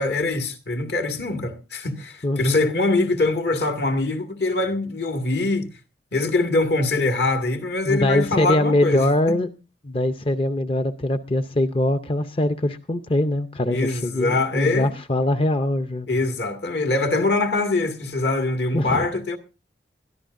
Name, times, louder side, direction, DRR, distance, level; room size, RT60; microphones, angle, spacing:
voice 1, 0.0-5.7 6.1-9.4 13.7-14.9 16.1-19.4, left 2 dB, 65° left, 2.0 m, -23 dB
voice 2, 2.2-2.6 7.9-9.5 9.8-16.1 18.7-19.1, left 1 dB, 30° left, 0.6 m, -22 dB
22.0 x 13.5 x 2.6 m
head